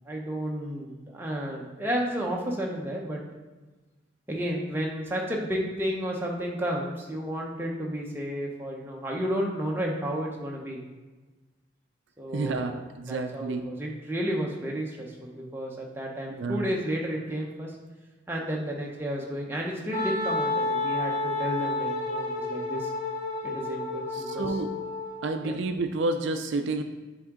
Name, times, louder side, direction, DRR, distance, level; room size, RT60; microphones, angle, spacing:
voice 1, 0.1-3.2 4.3-10.8 12.2-12.7 13.1-17.8 18.3-22.9 23.4-24.5 25.4-25.5, equal, 10° right, -2 dB, 0.7 m, -32 dB
voice 2, 12.3-13.7 16.4-16.7 24.1-24.7 25.2-26.8, right 3 dB, 70° right, 7 dB, 0.4 m, -30 dB
Wind instrument woodwind instrument, 19.9-25.5, left 2 dB, 40° left, 1.9 m, -30 dB
7.7 x 3.6 x 3.7 m, 1.2 s
head